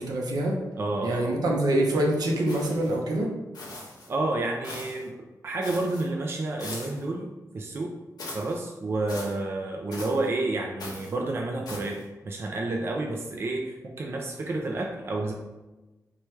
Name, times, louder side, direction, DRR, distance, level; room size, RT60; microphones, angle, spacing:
voice 1, 0.0-0.6 1.0-3.3, right 1 dB, 75° right, 0 dB, 0.7 m, -25 dB
voice 2, 0.8-1.3 4.1-5.1 5.4-7.9 8.3-12.0 12.2-15.3, right 2 dB, 35° right, 0 dB, 0.3 m, -30 dB
sound 1, 2.5-3.0 3.5-4.1 4.6-5.1 5.6-6.1 6.6-7.0 8.2-8.6 9.1-9.4 9.9-10.3 10.8-11.1 11.6-12.0, left 2 dB, 75° left, 0.9 m, -40 dB
4.4 x 2.2 x 3.1 m, 1.1 s
wide cardioid pair, 160°, 7 cm